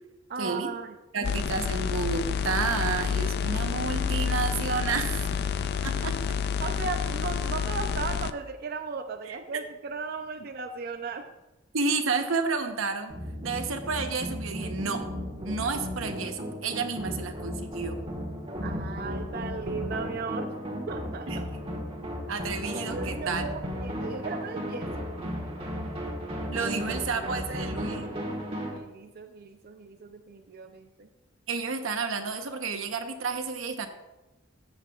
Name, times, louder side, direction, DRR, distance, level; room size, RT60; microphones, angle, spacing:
voice 1, 0.3-1.0 6.6-11.3 18.6-20.5 20.9-21.4 22.7-25.1 28.7-31.1, right 4 dB, 50° right, 6 dB, 0.5 m, -36 dB
voice 2, 1.1-5.3 5.8-6.2 9.3-9.4 11.7-13.2 13.4-15.0 15.4-18.0 21.3-21.4 22.3-23.4 26.5-28.1 31.5-33.9, right 4 dB, 85° right, 6 dB, 0.9 m, -31 dB
sound 1, 1.2-8.3, left 7 dB, 55° left, 0.4 m, -29 dB
sound 2, 13.1-28.8, equal, 30° right, 1.5 m, -35 dB
13.5 x 8.0 x 2.4 m, 1.1 s
head